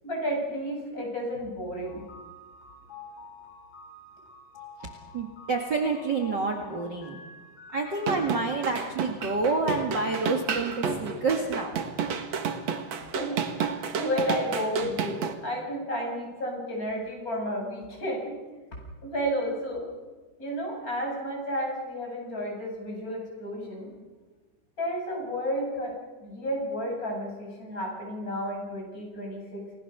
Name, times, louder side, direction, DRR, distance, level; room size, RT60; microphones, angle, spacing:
voice 1, 0.0-2.0 12.9-18.4 19.0-19.8 20.4-23.9 24.8-25.9 26.2-29.6, equal, 25° left, -1 dB, 8.6 m, -32 dB
sound 1, 1.8-8.3, left 3 dB, 65° left, 7.5 m, -48 dB
voice 2, 5.1-7.2 7.7-11.8, right 3 dB, 40° right, 2 dB, 2.4 m, -28 dB
sound 2, 8.0-15.3, right 6 dB, 60° right, 2.8 m, -31 dB
30.0 x 20.0 x 6.9 m, 1.3 s
omnidirectional pair, 3.6 m